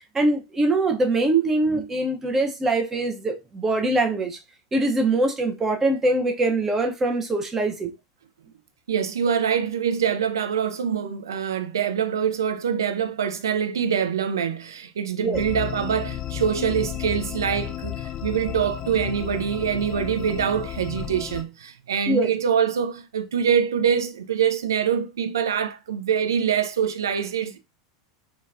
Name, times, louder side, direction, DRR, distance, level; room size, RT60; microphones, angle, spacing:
voice 1, 0.1-4.4 4.7-7.9 15.2-15.4 22.1-22.3, right 2 dB, 20° right, 0.5 m, -23 dB
voice 2, 8.9-27.6, right 8 dB, 75° right, 0.4 m, -24 dB
sound 1, 15.3-21.4, left 12 dB, 35° left, 0.3 m, -33 dB
2.8 x 2.2 x 2.3 m
figure-of-eight pair, 85°, 2 cm